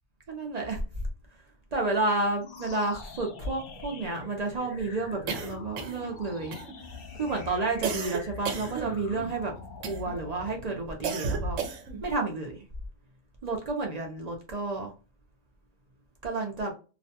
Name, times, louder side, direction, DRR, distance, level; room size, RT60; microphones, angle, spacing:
voice 1, 0.3-1.4 1.7-6.6 7.1-9.5 9.9-11.6 12.0-12.7 13.4-14.9 16.2-16.7, right 2 dB, 50° right, 1 dB, 0.5 m, -31 dB
sound 1, 2.4-11.9, left 4 dB, 55° left, 0.5 m, -45 dB
sound 2, 5.3-6.2 6.5-7.0 7.8-9.3 9.8-10.3 11.0-12.0, right 5 dB, 75° right, 0.9 m, -33 dB
2.4 x 2.1 x 2.7 m, 0.34 s
omnidirectional pair, 1.3 m